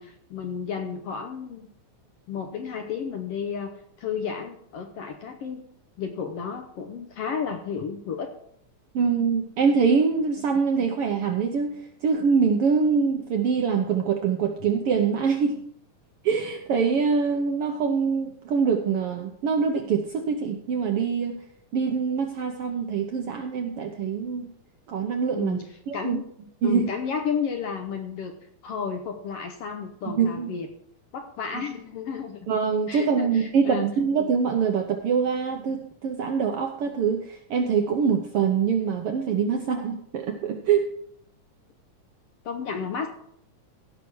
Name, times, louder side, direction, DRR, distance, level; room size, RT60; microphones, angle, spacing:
voice 1, 0.0-1.7 2.3-3.7 4.0-5.6 6.0-8.3 25.3-25.7 25.9-26.2 26.6-28.3 28.6-30.7 31.1-32.5 32.9-33.9 42.4-43.1, left 6 dB, 70° left, 5 dB, 1.6 m, -32 dB
voice 2, 8.9-15.6 16.2-21.3 21.7-24.5 24.9-25.6 25.9-26.2 26.6-26.9 30.0-30.5 32.5-40.9, right 6 dB, 70° right, 4 dB, 1.4 m, -24 dB
16.5 x 6.0 x 4.6 m, 0.69 s
omnidirectional pair, 3.5 m